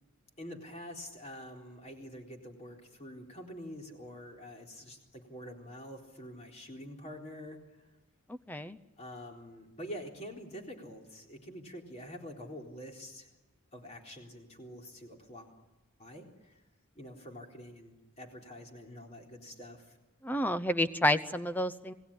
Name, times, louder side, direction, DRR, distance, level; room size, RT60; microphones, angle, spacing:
voice 1, 0.4-7.6 9.0-13.3 13.7-15.5 16.0-16.6 17.0-20.0, equal, 30° left, 1 dB, 3.9 m, -46 dB
voice 2, 20.2-21.9, left 1 dB, 10° left, 11 dB, 0.8 m, -29 dB
27.5 x 18.0 x 10.0 m, 1.1 s
head